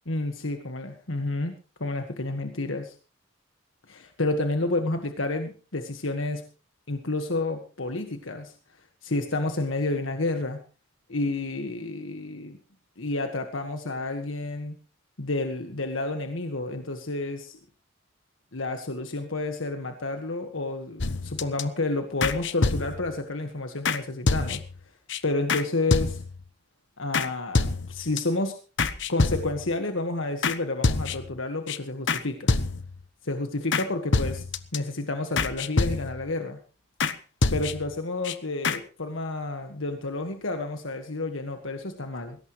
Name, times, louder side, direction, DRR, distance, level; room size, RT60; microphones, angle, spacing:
voice 1, 0.0-1.5 1.8-2.9 3.9-6.4 6.9-8.5 9.0-10.6 11.1-12.6 13.0-14.7 15.2-17.6 18.5-24.6 25.2-26.2 27.0-28.6 29.1-32.5 33.2-34.4 34.7-36.6 37.5-42.4, left 2 dB, 80° left, 6 dB, 1.7 m, -30 dB
sound 1, 21.0-21.6 22.2-23.1 23.9-24.0 24.3-24.8 25.1-25.2 25.5-25.6 25.9-26.4 27.1-27.3 27.5-28.2 28.8-29.7 30.4-30.6 30.8-31.4 31.7-31.8 32.1-32.2 32.5-33.0 33.7-33.9 34.1-34.8 35.4-36.3 37.0-37.1 37.4-37.9 38.2-38.3 38.6-38.8, left 3 dB, 65° left, 1.1 m, -26 dB
21.0 x 17.5 x 3.2 m, 0.36 s
head